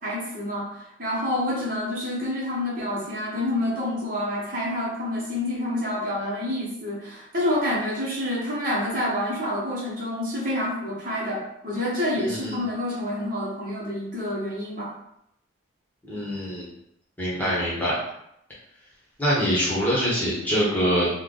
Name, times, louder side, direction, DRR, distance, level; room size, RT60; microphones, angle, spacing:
voice 1, 0.0-14.9, left 1 dB, 45° right, -5 dB, 1.0 m, -28 dB
voice 2, 12.2-12.6 16.0-16.7 17.2-17.9 19.2-21.1, equal, 10° left, -8 dB, 1.1 m, -24 dB
3.3 x 2.2 x 3.8 m, 0.77 s
head